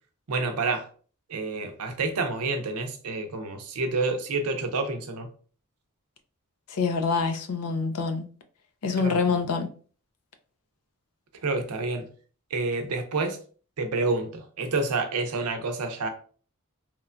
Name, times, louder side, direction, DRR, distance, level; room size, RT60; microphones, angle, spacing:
voice 1, 0.3-0.9 1.3-5.3 9.0-9.4 11.4-12.0 12.5-13.4 13.8-16.1, right 3 dB, 85° right, 0.6 m, -28 dB
voice 2, 6.7-8.3 8.8-9.7, left 4 dB, 85° left, 0.5 m, -26 dB
3.0 x 2.2 x 2.4 m
head